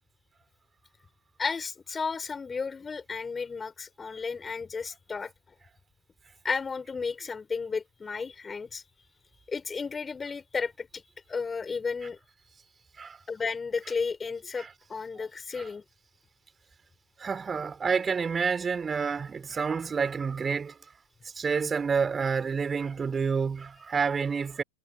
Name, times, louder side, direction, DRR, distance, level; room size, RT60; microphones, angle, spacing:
voice 1, 1.4-5.3 6.4-8.8 9.5-11.0 11.3-12.2 13.3-15.8, left 5 dB, 15° left, 4.3 m, -33 dB
voice 2, 17.2-20.8 21.3-24.6, right 5 dB, 20° right, 4.8 m, -29 dB
hypercardioid pair, 110°, 0 cm